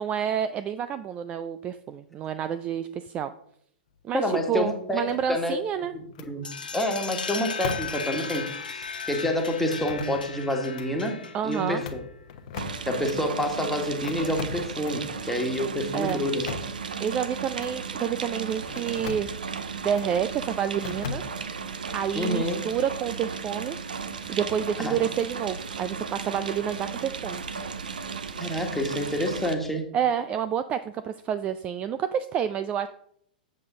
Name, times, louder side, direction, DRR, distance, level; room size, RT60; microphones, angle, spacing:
voice 1, 0.0-3.3 4.0-5.9 11.3-11.8 15.9-16.2 17.0-19.3 19.8-21.2 21.9-23.8 24.3-27.4 29.9-32.9, right 8 dB, 25° right, 12 dB, 0.4 m, -29 dB
voice 2, 4.1-5.0 5.3-5.6 5.9-6.5 6.7-12.0 12.9-16.5 22.1-22.6 24.8-25.0 28.4-29.9, left 1 dB, 5° left, 2 dB, 1.6 m, -28 dB
sound 1, 5.1-5.6 6.1-6.3 7.6-8.1 8.3-8.4 9.7-10.4 10.7-10.9 11.6-13.2 14.0-15.1 15.9-16.8 17.5-17.8 18.7-19.3 19.9-20.1 20.8-21.6, left 7 dB, 50° left, 1.0 m, -38 dB
sound 2, 6.4-12.0, left 5 dB, 80° left, 1.2 m, -36 dB
sound 3, 12.6-29.5, right 5 dB, 70° right, 0.9 m, -35 dB
7.7 x 7.6 x 3.8 m, 0.70 s
figure-of-eight pair, 110°, 5 cm